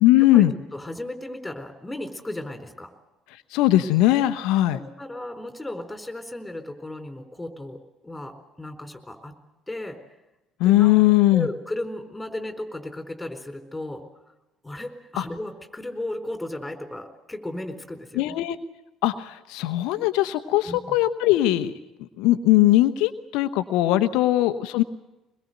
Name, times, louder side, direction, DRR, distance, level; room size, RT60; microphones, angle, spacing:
voice 1, 0.0-0.5 3.3-4.8 10.6-11.5 15.2-15.3 18.1-18.6 19.0-21.8 22.2-24.8, left 15 dB, 65° left, 11 dB, 1.0 m, -20 dB
voice 2, 0.7-2.9 4.7-9.4 9.7-10.0 10.6-10.9 11.3-14.1 14.6-18.3 20.6-20.9, left 1 dB, 10° left, 6 dB, 4.3 m, -35 dB
23.0 x 22.0 x 8.1 m, 0.96 s
hypercardioid pair, 60°, 0 cm